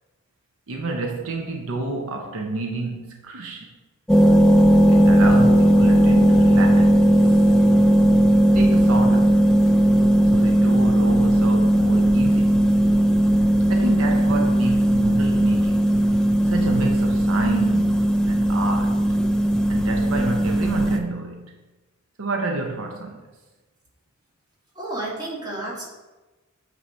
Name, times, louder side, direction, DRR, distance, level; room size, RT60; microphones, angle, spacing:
voice 1, 0.7-3.7 4.9-7.1 8.5-9.5 10.3-12.6 13.7-16.0 16.4-19.1 19.7-21.5 22.2-23.2, right 3 dB, 70° right, 2 dB, 0.6 m, -29 dB
sound 1, 4.1-21.0, right 1 dB, 5° left, 0.3 m, -17 dB
voice 2, 24.7-25.8, right 2 dB, 20° right, -5 dB, 1.5 m, -31 dB
8.0 x 2.8 x 4.3 m, 1.2 s
head